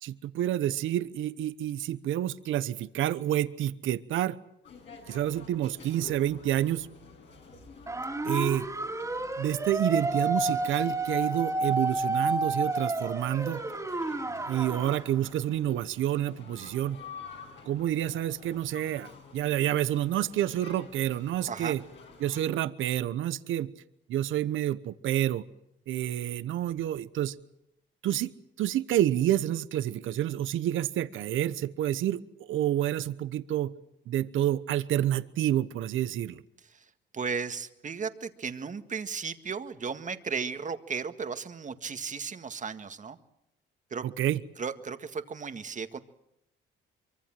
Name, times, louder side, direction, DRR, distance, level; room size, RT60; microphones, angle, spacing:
voice 1, 0.0-4.4 5.1-6.9 8.2-8.7 9.4-13.6 14.5-17.0 17.7-21.8 22.2-23.7 24.1-25.4 25.9-27.3 28.0-28.3 28.6-33.7 34.1-36.4 44.0-44.4, right 12 dB, 80° right, 14 dB, 1.0 m, -29 dB
sound 1, 4.6-22.4, left 5 dB, 70° left, 8.0 m, -50 dB
sound 2, 7.9-15.1, right 2 dB, 15° right, 2.8 m, -30 dB
voice 2, 37.1-43.2 43.9-44.0 44.6-46.0, right 5 dB, 40° right, 8 dB, 1.8 m, -35 dB
24.0 x 23.5 x 7.6 m, 0.83 s
cardioid pair, 90°, 20 cm